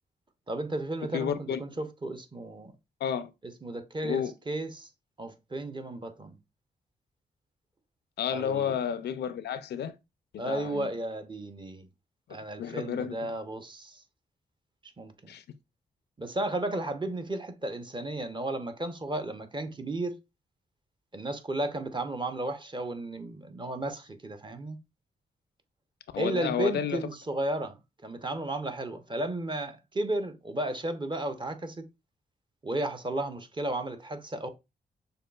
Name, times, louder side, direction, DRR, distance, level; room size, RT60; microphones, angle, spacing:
voice 1, 0.5-2.7 3.6-4.9 5.2-6.3 8.3-8.8 10.4-11.9 12.3-14.0 15.0-15.3 16.2-20.2 21.1-24.8 26.2-31.8 32.6-34.5, right 2 dB, 30° right, 0.7 m, -34 dB
voice 2, 1.1-1.6 3.0-3.3 4.0-4.3 8.2-9.9 10.5-10.9 12.3-13.3 15.3-15.4 26.1-27.0, left 8 dB, 75° left, 0.4 m, -31 dB
6.4 x 2.4 x 2.3 m
cardioid pair, 55°, 17 cm